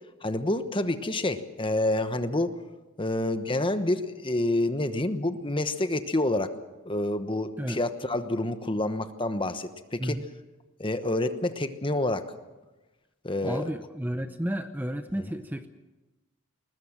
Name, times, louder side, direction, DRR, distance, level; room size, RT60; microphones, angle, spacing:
voice 1, 0.2-2.5 3.0-6.5 6.8-10.2 10.8-12.3 13.2-13.7 15.2-15.3, left 1 dB, 25° left, 10 dB, 1.1 m, -28 dB
voice 2, 13.4-15.7, equal, 10° right, 9 dB, 0.7 m, -32 dB
21.0 x 20.5 x 7.4 m, 1.1 s
head